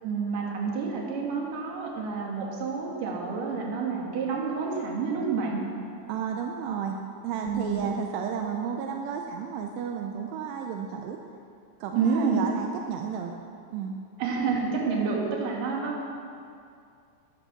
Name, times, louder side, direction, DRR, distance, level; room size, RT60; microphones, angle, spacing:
voice 1, 0.0-5.6 7.4-8.0 12.0-12.4 14.2-16.0, right 5 dB, 55° right, -2 dB, 3.0 m, -29 dB
voice 2, 6.1-11.2 11.8-13.3 13.7-14.0, right 7 dB, 85° right, 3 dB, 2.7 m, -33 dB
13.5 x 9.5 x 6.0 m, 2.4 s
omnidirectional pair, 5.1 m